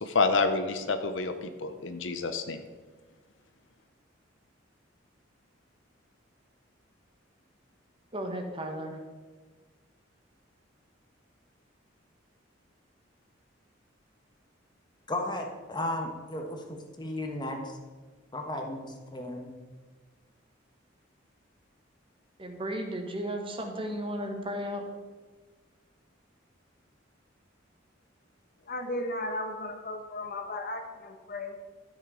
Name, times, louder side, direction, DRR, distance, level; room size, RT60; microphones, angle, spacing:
voice 1, 0.0-2.6, left 4 dB, 75° left, 8 dB, 0.8 m, -28 dB
voice 2, 8.1-9.0 22.4-24.8, equal, 30° right, 3 dB, 1.3 m, -34 dB
voice 3, 15.1-17.7 18.3-19.5, left 1 dB, 25° left, 3 dB, 1.4 m, -35 dB
voice 4, 28.6-31.6, left 1 dB, 50° left, 5 dB, 1.3 m, -35 dB
13.0 x 6.4 x 5.0 m, 1.4 s
head